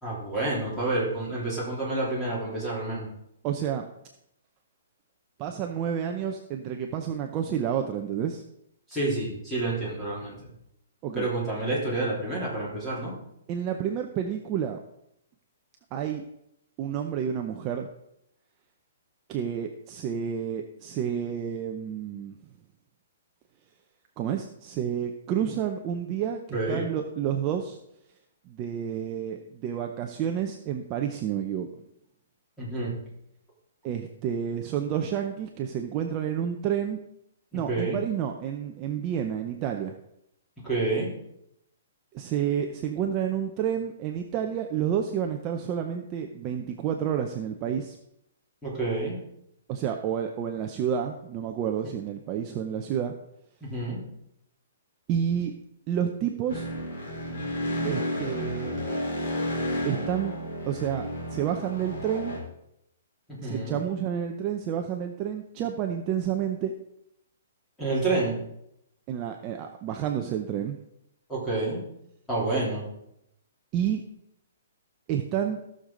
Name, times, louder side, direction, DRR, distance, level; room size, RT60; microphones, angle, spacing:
voice 1, 0.0-3.1 8.9-10.5 11.1-13.1 26.5-26.9 32.6-32.9 37.5-38.0 40.6-41.1 48.6-49.2 53.6-54.0 63.4-63.8 67.8-68.4 71.3-71.8 72.3-72.8, right 2 dB, 5° left, -7 dB, 3.2 m, -29 dB
voice 2, 3.4-3.9 5.4-8.4 11.0-11.3 13.5-14.8 15.9-16.2 16.8-17.9 19.3-22.4 24.2-27.8 28.5-31.7 33.8-37.0 37.5-39.9 42.1-48.0 49.7-53.1 55.1-55.5 55.9-56.7 57.8-58.8 59.8-60.4 60.7-62.4 63.4-66.7 69.1-70.8 73.7-74.0 75.1-75.6, right 9 dB, 20° right, 4 dB, 0.6 m, -30 dB
sound 1, 56.5-62.4, equal, 45° left, 3.7 m, -32 dB
16.0 x 6.6 x 3.8 m, 0.79 s
hypercardioid pair, 170°, 0 cm